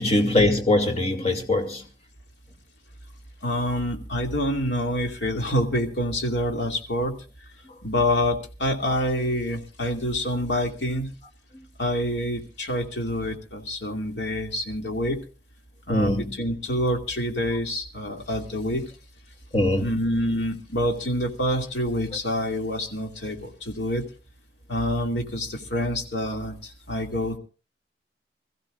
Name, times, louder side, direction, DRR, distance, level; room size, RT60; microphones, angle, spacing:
voice 1, 0.0-1.8 15.9-16.3 19.5-19.9, left 1 dB, 35° left, 2.4 m, -22 dB
voice 2, 3.4-7.2 7.8-11.1 11.8-15.2 15.9-18.9 19.8-24.1 24.7-27.4, equal, 85° left, 2.5 m, -27 dB
25.5 x 15.0 x 2.5 m
head